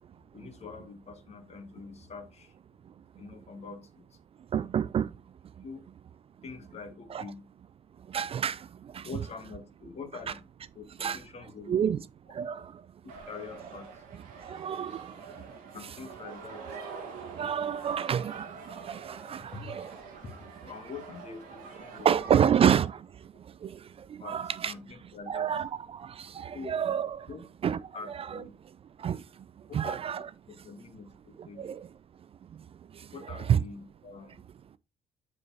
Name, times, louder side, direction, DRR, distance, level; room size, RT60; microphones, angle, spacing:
voice 1, 0.3-2.5 3.2-4.0 5.6-5.8 6.4-7.5 9.0-10.4 10.7-12.0 13.0-14.0 15.7-16.7 19.5-19.6 20.6-22.5 24.2-25.5 26.5-26.9 27.3-27.4 27.9-28.5 29.7-31.7 33.1-34.4, left 4 dB, 45° left, 1.8 m, -45 dB
voice 2, 4.5-5.1 7.1-7.2 8.1-8.7 8.9-9.1 11.0-11.2 11.7-12.0 12.3-12.7 14.4-15.1 17.4-20.0 21.9-23.0 23.6-23.8 24.1-24.7 25.3-27.3 27.6-27.8 28.3-28.4 29.0-29.2 29.7-30.2 31.4-31.9 33.5-33.6, right 8 dB, 40° right, 0.4 m, -28 dB
sound 1, 13.1-22.4, right 5 dB, 65° right, 1.6 m, -46 dB
7.2 x 6.5 x 2.8 m
hypercardioid pair, 50°, 16 cm